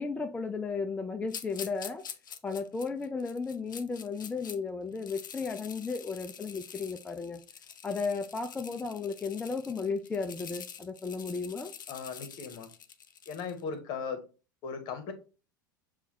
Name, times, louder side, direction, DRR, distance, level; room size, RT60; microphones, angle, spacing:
voice 1, 0.0-2.0 2.4-7.4 7.8-11.7, left 4 dB, 10° left, 0.4 m, -34 dB
sound 1, 1.3-4.6 4.9-13.6, left 8 dB, 75° left, 0.5 m, -46 dB
voice 2, 11.9-12.7 13.3-14.2 14.6-15.1, left 5 dB, 45° left, 1.1 m, -37 dB
6.9 x 2.3 x 3.0 m
figure-of-eight pair, 80°, 11 cm